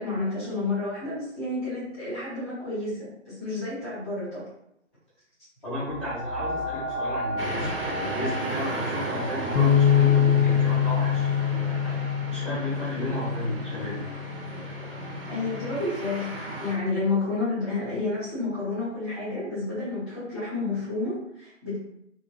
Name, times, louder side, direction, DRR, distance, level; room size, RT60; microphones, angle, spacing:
voice 1, 0.0-4.4 15.3-21.8, left 3 dB, ahead, -15 dB, 1.1 m, -30 dB
voice 2, 5.6-11.9 12.3-14.0, left 1 dB, 25° left, -14 dB, 0.8 m, -33 dB
sound 1, 5.9-15.1 15.8-15.9, equal, 50° left, 0.9 m, -36 dB
sound 2, 7.4-16.8, right 2 dB, 45° right, 0.6 m, -35 dB
Bass guitar, 9.6-15.8, left 8 dB, 85° left, 0.5 m, -24 dB
2.8 x 2.5 x 2.5 m, 0.78 s
figure-of-eight pair, 145°, 39 cm